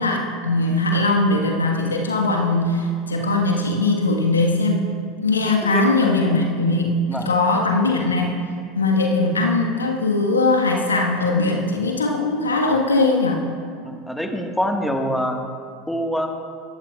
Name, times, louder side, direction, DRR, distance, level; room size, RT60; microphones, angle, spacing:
voice 1, 0.0-4.9 5.2-8.4 8.7-13.4, left 2 dB, 80° left, 2 dB, 1.4 m, -20 dB
voice 2, 5.6-6.0 7.1-7.3 13.8-15.4 15.9-16.3, equal, 5° left, 3 dB, 1.5 m, -25 dB
20.0 x 14.5 x 2.4 m, 2.2 s
figure-of-eight pair, 75°, 0 cm